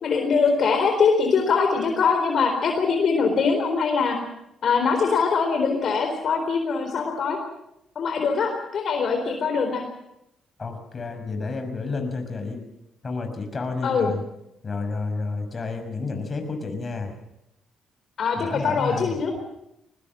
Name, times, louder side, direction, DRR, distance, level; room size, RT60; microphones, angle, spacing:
voice 1, 0.0-4.2 4.6-7.4 8.0-9.8 13.8-14.1 18.2-19.4, left 5 dB, 60° left, 4 dB, 4.0 m, -22 dB
voice 2, 10.6-12.6 13.0-14.2 14.6-17.1 18.4-19.2, left 3 dB, 35° left, 6 dB, 5.9 m, -30 dB
21.5 x 20.0 x 7.5 m, 0.83 s
cardioid pair, 90°, 0 cm